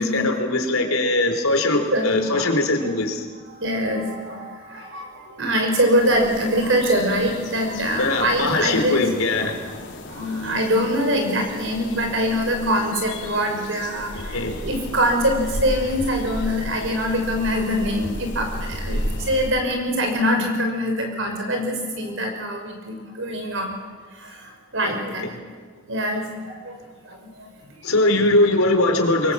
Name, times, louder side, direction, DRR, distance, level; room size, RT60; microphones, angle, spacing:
voice 1, 0.0-3.3 8.0-9.7 14.3-14.7 24.8-25.0 25.2-25.3 27.8-29.3, left 2 dB, 85° left, 5 dB, 3.7 m, -21 dB
voice 2, 1.7-2.5 3.5-9.1 9.7-9.8 10.1-23.7 24.2-25.3 25.9-26.8 27.1-27.5, equal, 60° right, 3 dB, 5.7 m, -24 dB
sound 1, 5.9-19.5, left 1 dB, 55° left, 3.9 m, -34 dB
25.0 x 22.5 x 7.5 m, 1.5 s
head